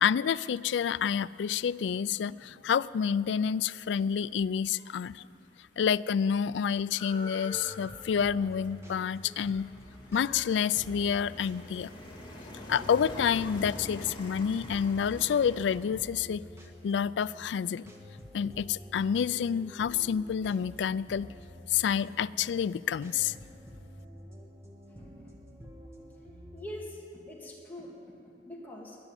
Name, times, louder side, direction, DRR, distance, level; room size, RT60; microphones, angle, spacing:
voice 1, 0.0-5.2 5.8-9.7 10.1-11.9 12.7-16.4 16.8-17.8 18.3-21.3 21.7-23.3, left 7 dB, 85° left, 19 dB, 0.3 m, -28 dB
sound 1, 5.1-5.2 5.4-15.8, left 1 dB, 30° left, 2.3 m, -45 dB
sound 2, 7.5-26.8, equal, 15° right, 1.6 m, -49 dB
voice 2, 25.0-25.3 26.5-29.0, left 1 dB, 10° left, -4 dB, 2.6 m, -44 dB
21.0 x 7.1 x 9.7 m, 2.7 s
head